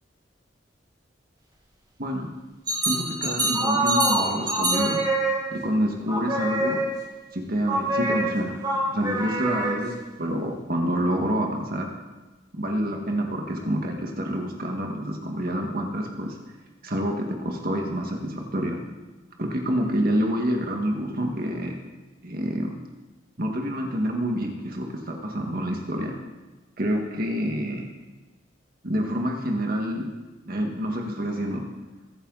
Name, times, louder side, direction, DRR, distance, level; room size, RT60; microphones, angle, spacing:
sound 1, 2.7-5.7 6.1-7.1 7.7-10.1, right 1 dB, 20° right, 2.7 m, -25 dB
voice 1, 2.8-5.0 5.5-6.8 7.3-8.6 8.9-9.9 10.2-11.9 12.5-16.4 16.8-18.8 19.4-21.8 22.2-22.7 23.4-26.1 26.8-27.8 28.8-30.1 30.5-31.6, equal, 50° right, 2 dB, 1.8 m, -27 dB
22.0 x 9.9 x 4.1 m, 1.2 s
head